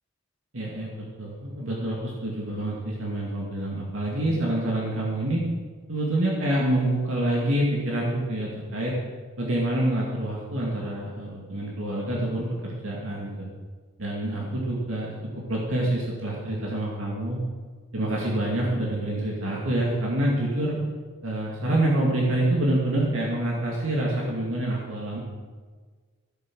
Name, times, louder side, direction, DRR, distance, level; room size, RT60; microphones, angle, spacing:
voice 1, 0.5-5.4 5.9-8.9 9.4-13.5 14.0-15.1 15.5-17.4 17.9-20.8 21.2-25.2, right 1 dB, 65° right, -3 dB, 2.3 m, -27 dB
15.5 x 8.4 x 6.3 m, 1.5 s
head